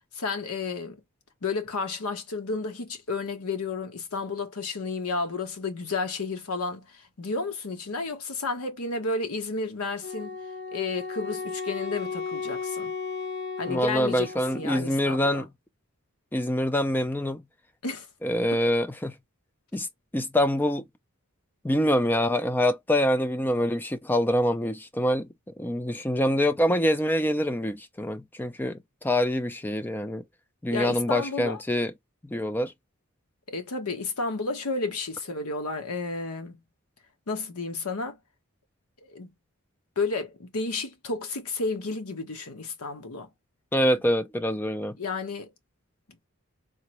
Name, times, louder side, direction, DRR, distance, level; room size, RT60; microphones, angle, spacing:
voice 1, 0.1-1.0 1.4-10.4 10.7-12.9 13.6-15.4 17.8-18.1 30.7-31.6 33.5-36.6 37.3-38.2 39.0-39.3 40.0-43.3 45.0-45.5, left 3 dB, 90° left, 0.9 m, -32 dB
Wind instrument woodwind instrument, 10.0-14.8, left 5 dB, 50° left, 0.7 m, -35 dB
voice 2, 13.7-15.5 16.3-17.4 18.2-19.1 19.7-19.9 20.1-20.8 21.6-25.3 25.6-30.2 30.6-31.9 32.2-32.7 43.7-45.0, equal, 10° left, 0.3 m, -25 dB
3.7 x 2.0 x 2.8 m
head